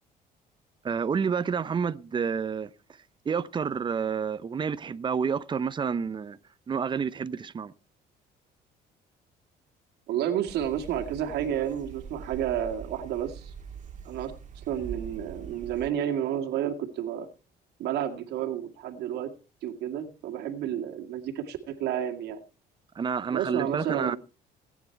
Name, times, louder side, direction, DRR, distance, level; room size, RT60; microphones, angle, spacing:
voice 1, 0.8-2.7 3.2-6.4 6.7-7.7 23.0-24.2, right 6 dB, 30° right, 0.7 m, -29 dB
voice 2, 10.1-13.5 14.0-17.3 17.8-19.3 19.6-22.4 23.3-24.2, right 10 dB, 80° right, 2.1 m, -31 dB
sound 1, 10.5-15.9, right 7 dB, 45° right, 1.8 m, -43 dB
18.5 x 9.5 x 4.5 m
cardioid pair, 110°, 17 cm